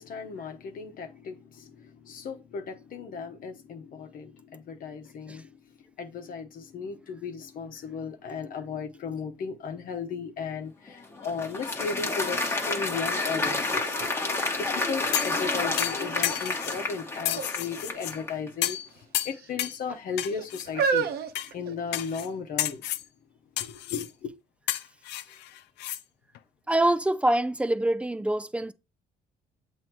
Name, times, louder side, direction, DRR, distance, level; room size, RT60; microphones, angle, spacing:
voice 1, 0.0-5.5 6.0-14.0 14.6-21.1 21.5-22.8 23.6-24.3, left 5 dB, 55° left, 1.0 m, -36 dB
Applause, 10.9-18.5, left 3 dB, 15° left, 1.2 m, -30 dB
sound 1, 13.2-13.3 13.7-15.3 15.8-16.3 17.2-17.5 17.8-18.0 18.9-19.5 20.2-22.3 23.0-23.1, right 5 dB, 65° right, 0.8 m, -32 dB
sound 2, 15.1-15.4 15.8-16.8 17.2-18.1 18.6-18.9 19.1-19.8 20.2-20.7 21.3-21.5 21.9-22.3 22.6-23.1 23.6-24.1 24.7-26.0 26.3-26.4, left 13 dB, 80° left, 0.5 m, -31 dB
voice 2, 26.7-28.7, right 1 dB, 5° right, 0.4 m, -25 dB
7.6 x 2.7 x 4.6 m
cardioid pair, 110°, 17 cm